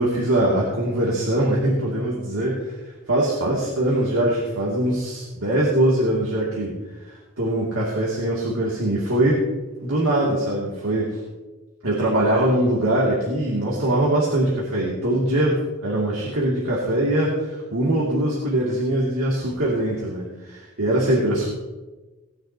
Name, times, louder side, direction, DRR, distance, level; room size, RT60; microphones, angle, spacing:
voice 1, 0.0-2.8 3.1-6.8 7.0-9.4 9.8-11.2 11.8-21.5, right 1 dB, 70° right, -5 dB, 2.5 m, -22 dB
18.5 x 10.0 x 2.9 m, 1.2 s
head